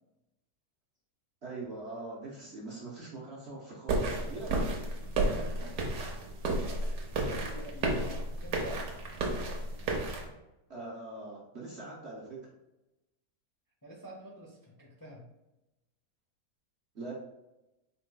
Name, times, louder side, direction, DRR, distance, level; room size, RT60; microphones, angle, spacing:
voice 1, 1.4-4.5 10.7-12.4 16.9-17.1, right 2 dB, 50° right, -4 dB, 1.1 m, -42 dB
sound 1, 3.9-10.2, right 2 dB, 85° right, 1.4 m, -32 dB
voice 2, 5.2-5.9 6.8-8.1 8.4-9.0 13.8-15.3, right 1 dB, 25° left, -3 dB, 0.4 m, -47 dB
4.7 x 4.3 x 2.2 m, 0.95 s
omnidirectional pair, 1.6 m